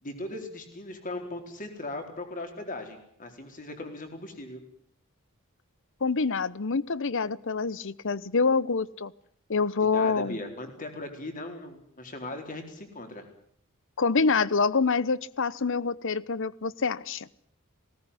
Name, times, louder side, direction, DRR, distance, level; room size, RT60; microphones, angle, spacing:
voice 1, 0.0-4.6 9.8-13.3, left 2 dB, 40° left, 5 dB, 4.3 m, -38 dB
voice 2, 6.0-9.1 9.5-10.4 14.0-17.3, left 4 dB, 60° left, 20 dB, 0.8 m, -26 dB
20.0 x 18.0 x 9.9 m, 0.67 s
head